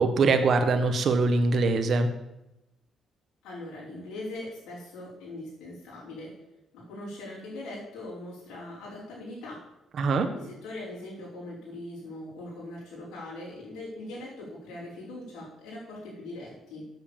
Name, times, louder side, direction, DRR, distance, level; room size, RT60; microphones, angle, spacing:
voice 1, 0.0-2.1 10.0-10.3, right 3 dB, 60° right, 7 dB, 1.2 m, -23 dB
voice 2, 3.4-6.4 6.7-9.7 10.0-16.9, left 1 dB, 85° left, -8 dB, 4.4 m, -41 dB
7.9 x 7.2 x 7.2 m, 0.92 s
cardioid pair, 90°, 0 cm